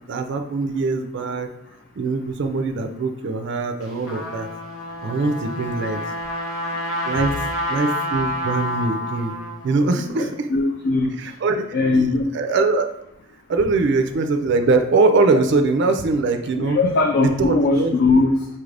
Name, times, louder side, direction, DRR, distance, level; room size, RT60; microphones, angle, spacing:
voice 1, 0.1-1.5 2.0-4.5 5.0-6.0 7.1-7.3 7.7-9.4 9.6-10.5 11.2-12.1 12.3-12.9 13.5-16.8 17.2-17.9, right 3 dB, 55° right, 6 dB, 0.4 m, -22 dB
Trumpet, 3.8-9.8, left 1 dB, 80° left, 0.9 m, -28 dB
voice 2, 10.0-11.4 11.7-12.3 16.7-18.5, left 3 dB, 50° left, 3 dB, 0.4 m, -20 dB
5.5 x 2.5 x 3.3 m, 0.77 s
head